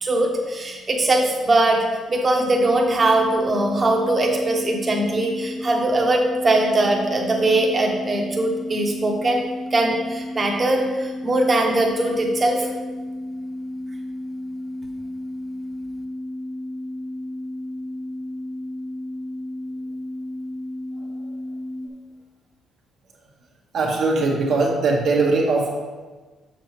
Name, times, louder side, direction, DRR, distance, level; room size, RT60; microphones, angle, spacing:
voice 1, 0.0-1.8 2.1-12.7, right 2 dB, 30° right, 0 dB, 1.3 m, -21 dB
sound 1, 2.4-21.9, left 1 dB, 35° left, 0.5 m, -33 dB
voice 2, 23.7-25.8, right 3 dB, 65° right, -1 dB, 1.6 m, -20 dB
6.8 x 6.5 x 3.2 m, 1.3 s
cardioid pair, 90°, 0 cm